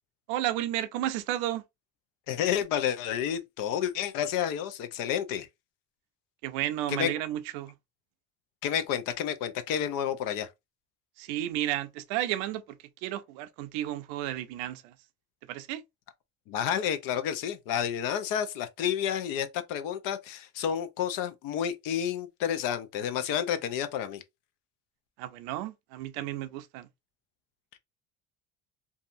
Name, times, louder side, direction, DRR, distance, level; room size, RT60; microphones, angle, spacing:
voice 1, 0.3-1.6 6.4-7.7 11.2-12.8 13.0-14.9 15.5-15.8 25.2-26.9, right 13 dB, 90° right, 0.5 m, -32 dB
voice 2, 2.3-5.5 6.9-7.1 8.6-10.5 16.5-24.2, left 9 dB, 75° left, 0.6 m, -30 dB
2.7 x 2.4 x 2.5 m
supercardioid pair, 90°, 33 cm